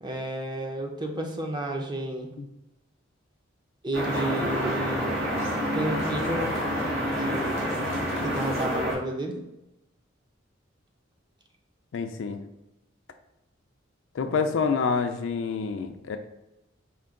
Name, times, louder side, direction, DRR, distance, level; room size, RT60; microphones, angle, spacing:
voice 1, 0.0-2.3 3.8-5.2 5.7-6.5 7.1-7.7 8.2-9.4 14.2-14.5, right 1 dB, 20° right, 3 dB, 0.5 m, -31 dB
sound 1, 3.9-9.0, equal, 90° right, 1.5 m, -28 dB
voice 2, 11.9-12.4 14.1-16.2, left 5 dB, 70° left, 7 dB, 0.4 m, -27 dB
4.5 x 2.2 x 3.6 m, 0.90 s
head